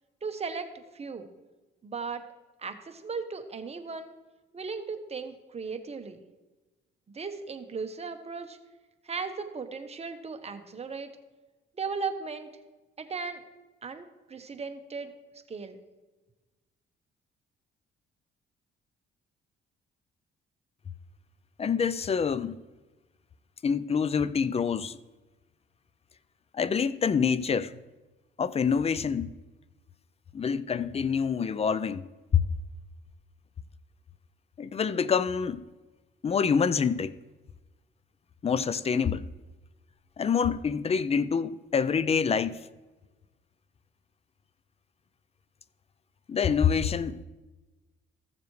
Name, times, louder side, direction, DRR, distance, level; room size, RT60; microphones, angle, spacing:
voice 1, 0.2-1.3 1.8-2.2 2.6-4.1 4.5-6.2 7.1-8.6 9.0-11.1 11.7-12.5 13.0-13.4 13.8-15.1 15.5-15.8, right 5 dB, 30° right, 1.0 m, -36 dB
voice 2, 21.6-22.6 23.6-25.0 26.5-27.7 28.4-29.3 30.3-32.0 32.3-32.4 34.6-35.6 36.2-37.1 38.4-39.3 40.2-42.6 46.3-47.2, left 6 dB, 30° left, 0.5 m, -26 dB
15.0 x 6.9 x 3.2 m
cardioid pair, 90°, 20 cm